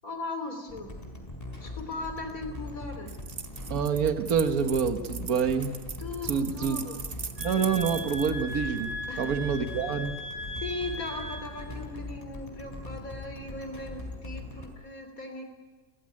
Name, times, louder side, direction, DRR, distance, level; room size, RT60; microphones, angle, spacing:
voice 1, 0.0-0.9 1.6-3.2 6.0-7.0 9.1-9.3 10.5-15.4, left 3 dB, 60° left, 6 dB, 3.8 m, -38 dB
sound 1, 0.7-14.7, left 2 dB, 25° left, 4.3 m, -41 dB
sound 2, 3.1-9.3, right 5 dB, 40° right, 1.2 m, -40 dB
voice 2, 3.7-5.8 6.2-6.8 7.4-10.2, right 6 dB, 65° right, 8 dB, 1.8 m, -27 dB
sound 3, 7.4-11.7, left 1 dB, 85° right, 5.0 m, -38 dB
30.0 x 15.0 x 9.9 m, 1.3 s
omnidirectional pair, 1.6 m